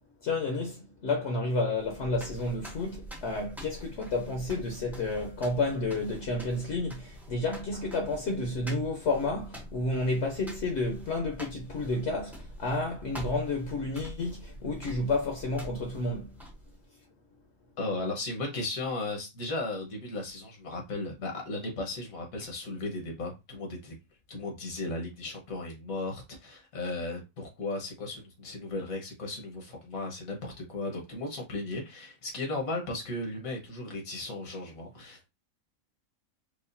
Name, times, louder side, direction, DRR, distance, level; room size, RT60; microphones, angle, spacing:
voice 1, 0.2-16.3, left 2 dB, 60° left, 1.0 m, -31 dB
sound 1, 1.7-16.8, right 1 dB, ahead, 0.6 m, -45 dB
voice 2, 17.8-23.9 24.3-35.3, left 2 dB, 80° left, 1.6 m, -36 dB
4.8 x 2.4 x 2.6 m
omnidirectional pair, 1.4 m